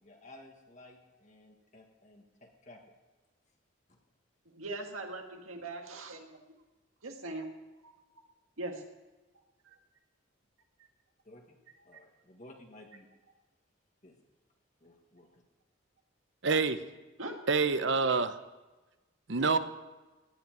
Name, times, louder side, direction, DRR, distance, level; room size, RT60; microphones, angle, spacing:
voice 1, 0.0-2.9 11.2-11.6 11.8-13.1 14.0-14.2 14.8-15.4, left 1 dB, 35° left, 2 dB, 1.6 m, -55 dB
voice 2, 4.5-6.6 7.0-7.5 7.8-7.9 8.6-8.8 17.2-17.4, right 2 dB, 90° right, 3 dB, 1.9 m, -40 dB
voice 3, 16.4-16.8 17.5-18.4 19.3-19.6, right 4 dB, 60° right, 12 dB, 0.8 m, -26 dB
17.0 x 5.7 x 9.2 m, 1.2 s
head